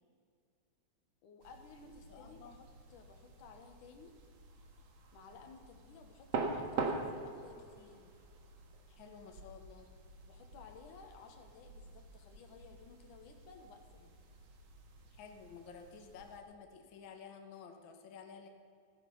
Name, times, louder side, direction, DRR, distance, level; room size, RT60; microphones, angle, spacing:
voice 1, 1.2-4.1 5.1-8.2 10.2-14.1, left 5 dB, 85° left, 5 dB, 3.0 m, -56 dB
sound 1, 1.4-16.4, right 4 dB, 60° right, 2.7 m, -45 dB
voice 2, 2.1-2.6 8.9-9.9 15.1-18.5, left 6 dB, 50° left, 4 dB, 1.8 m, -52 dB
15.5 x 14.0 x 5.5 m, 2.3 s
omnidirectional pair, 3.4 m